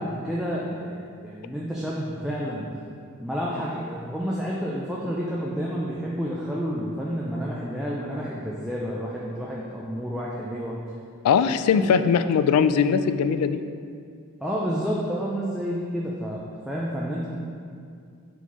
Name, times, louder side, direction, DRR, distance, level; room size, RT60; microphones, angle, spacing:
voice 1, 0.0-2.7 3.2-10.7 11.7-12.0 14.4-17.3, equal, ahead, -6 dB, 0.4 m, -30 dB
voice 2, 11.2-13.6, left 6 dB, 85° left, 15 dB, 0.3 m, -20 dB
4.6 x 4.4 x 5.5 m, 2.3 s
head